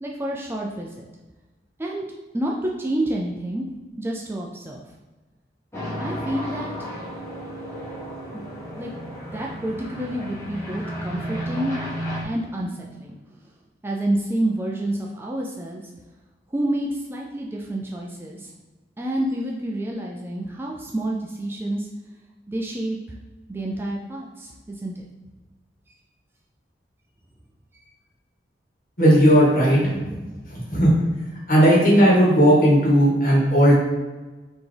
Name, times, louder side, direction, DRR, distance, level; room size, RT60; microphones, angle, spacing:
voice 1, 0.0-1.1 1.8-2.0 2.3-3.7 4.0-4.8 6.0-6.7 8.3-8.4 8.7-8.9 9.3-11.7 12.2-13.2 13.8-15.8 16.5-18.5 19.0-21.9 22.5-23.0 23.5-25.0, right 1 dB, 15° right, -1 dB, 0.3 m, -28 dB
sound 1, 5.7-12.2, equal, 15° left, 0.8 m, -33 dB
voice 2, 29.0-30.2 30.5-30.9 31.5-33.8, equal, 50° left, -5 dB, 1.4 m, -16 dB
4.2 x 2.9 x 3.3 m, 1.2 s
head